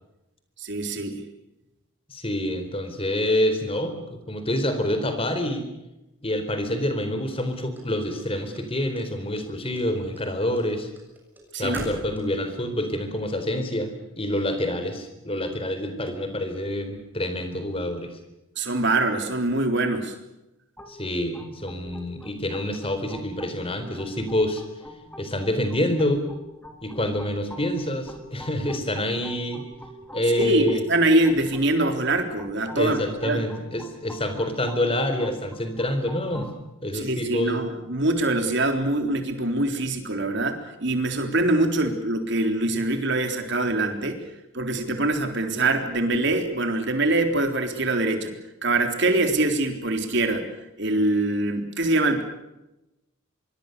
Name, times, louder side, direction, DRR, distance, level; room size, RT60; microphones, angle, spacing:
voice 1, 0.6-1.2 11.5-11.9 18.6-20.1 30.4-33.4 36.9-44.2 44.5-48.3 48.6-50.5 50.8-52.2, right 2 dB, 55° right, 6 dB, 3.8 m, -24 dB
voice 2, 2.1-5.7 6.2-10.9 11.6-13.9 14.2-18.2 20.9-24.6 25.2-26.2 26.8-29.6 30.1-30.8 32.7-36.5 36.8-37.6, left 1 dB, 25° left, 8 dB, 4.1 m, -27 dB
sound 1, 7.3-8.6 8.9-9.5 9.8-12.6, right 1 dB, 10° right, 7.1 m, -41 dB
sound 2, 20.8-36.5, left 1 dB, 10° left, 3.3 m, -45 dB
25.5 x 23.0 x 6.8 m, 0.93 s
head